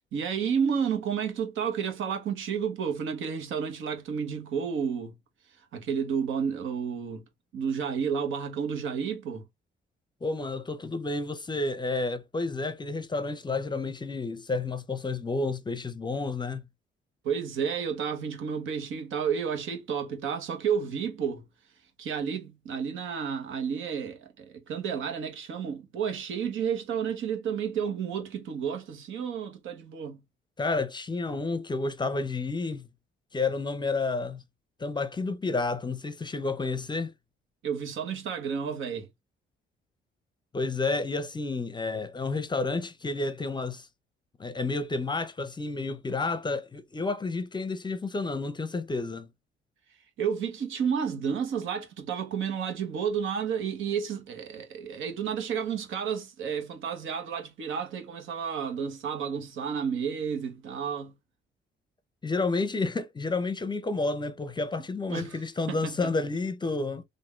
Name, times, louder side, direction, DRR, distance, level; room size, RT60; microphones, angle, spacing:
voice 1, 0.1-5.1 5.7-7.2 7.5-9.4 17.2-21.4 22.0-30.2 37.6-39.1 50.2-61.1 65.1-65.4 65.7-66.0, right 7 dB, 80° right, 1.3 m, -31 dB
voice 2, 10.2-16.6 30.6-32.9 33.3-34.4 34.8-37.1 40.5-43.9 44.4-49.3 62.2-67.0, left 3 dB, 20° left, 0.6 m, -30 dB
3.6 x 2.6 x 3.2 m
cardioid pair, 90°, 20 cm